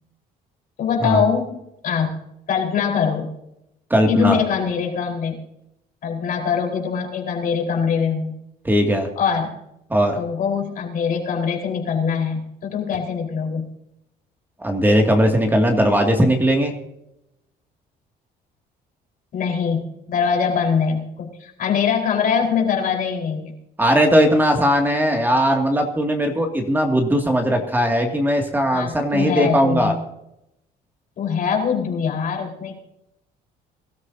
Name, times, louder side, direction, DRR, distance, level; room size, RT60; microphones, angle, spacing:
voice 1, 0.8-1.6 1.8-2.1 2.5-3.3 4.1-5.4 6.0-8.3 9.2-9.5 10.2-13.7 19.3-23.5 28.7-30.0 31.2-32.8, left 6 dB, 55° left, 0 dB, 4.4 m, -23 dB
voice 2, 3.9-4.4 8.6-9.1 9.9-10.2 14.6-16.8 23.8-29.9, equal, 10° right, 2 dB, 2.3 m, -18 dB
22.5 x 13.5 x 2.8 m, 0.84 s
cardioid pair, 110°, 17 cm